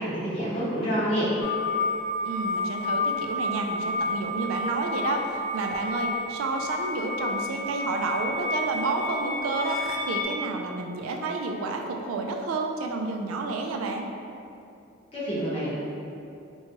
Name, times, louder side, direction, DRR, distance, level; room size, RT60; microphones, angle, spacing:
voice 1, 0.0-1.3 15.1-15.8, equal, 30° left, -10 dB, 0.7 m, -27 dB
sound 1, 1.4-10.2, left 2 dB, 70° left, 0.3 m, -30 dB
voice 2, 2.2-14.1, right 3 dB, 85° right, 2 dB, 0.3 m, -30 dB
2.9 x 2.2 x 2.8 m, 2.6 s
head